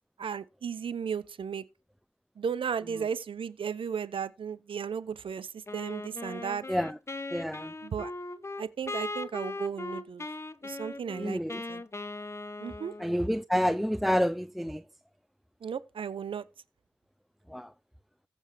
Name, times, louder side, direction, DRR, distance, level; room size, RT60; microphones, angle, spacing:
voice 1, 0.2-1.6 2.4-6.6 7.8-8.1 8.6-10.3 10.6-11.4 11.7-11.8 12.6-12.9 15.6-16.4, right 7 dB, 70° right, 0.8 m, -35 dB
Wind instrument woodwind instrument, 5.7-13.3, left 2 dB, 30° left, 0.8 m, -39 dB
voice 2, 7.3-7.7 11.1-11.6 13.0-14.8 17.5-17.7, equal, ahead, 0.4 m, -28 dB
15.0 x 7.1 x 3.4 m
supercardioid pair, 40°, 9 cm